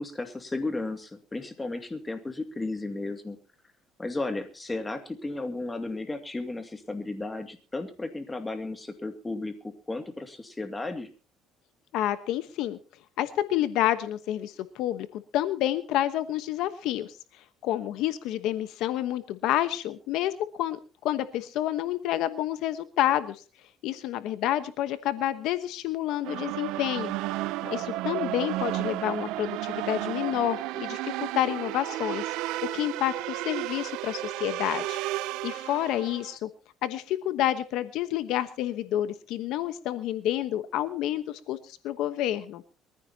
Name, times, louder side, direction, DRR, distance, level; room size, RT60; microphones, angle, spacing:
voice 1, 0.0-3.4 4.0-11.1 27.6-27.9, left 2 dB, 15° left, 7 dB, 2.3 m, -34 dB
voice 2, 11.9-12.8 13.2-17.1 17.6-23.4 23.8-27.1 27.7-32.2 32.6-35.0 35.4-36.5 36.8-42.6, left 13 dB, 75° left, 12 dB, 1.1 m, -29 dB
sound 1, 26.2-36.4, right 17 dB, 85° right, 0.6 m, -33 dB
23.0 x 15.0 x 2.9 m, 0.35 s
cardioid pair, 125°, 0 cm